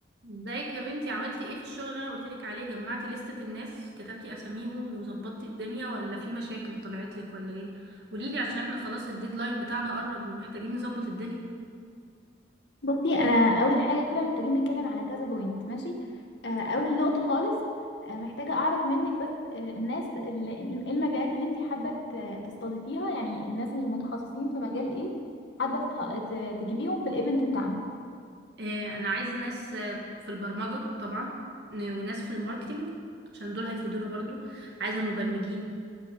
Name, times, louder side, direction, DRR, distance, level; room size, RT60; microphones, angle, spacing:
voice 1, 0.2-11.4 28.6-30.0 30.3-31.3 31.7-32.9 33.3-35.7, right 1 dB, 60° right, -1 dB, 2.0 m, -34 dB
voice 2, 12.8-16.0 16.4-17.6 18.0-25.1 25.6-27.8, left 1 dB, 70° left, 1 dB, 1.6 m, -29 dB
13.5 x 5.3 x 7.2 m, 2.2 s
head